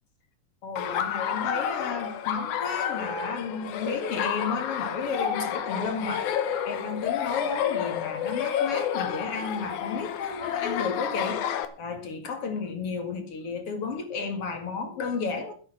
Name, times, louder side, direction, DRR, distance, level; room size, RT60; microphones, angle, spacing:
voice 1, 0.6-6.2 6.6-11.4 11.8-15.5, left 4 dB, 50° left, 2.7 m, -33 dB
Laughter, 0.8-11.7, left 9 dB, 70° left, 2.4 m, -30 dB
12.0 x 11.0 x 5.8 m
omnidirectional pair, 3.8 m